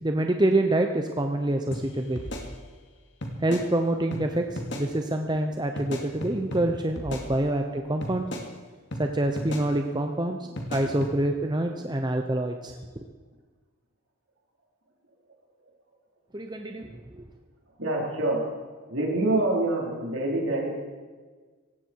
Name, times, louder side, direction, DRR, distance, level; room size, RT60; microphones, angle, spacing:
voice 1, 0.0-2.2 3.4-8.3 9.0-10.4 10.7-13.0 16.3-17.3, right 1 dB, 20° right, 4 dB, 0.8 m, -26 dB
sound 1, 1.7-1.8 2.2-2.9 3.2-3.7 4.1-4.2 4.6-4.9 5.8-6.6 7.0-7.7 8.0-8.5 8.9-9.0 9.4-9.7 10.6-11.1, equal, 55° left, 2.3 m, -35 dB
voice 2, 17.8-18.4 18.9-20.8, right 2 dB, 65° right, -2 dB, 4.3 m, -27 dB
18.0 x 15.5 x 4.7 m, 1.4 s
head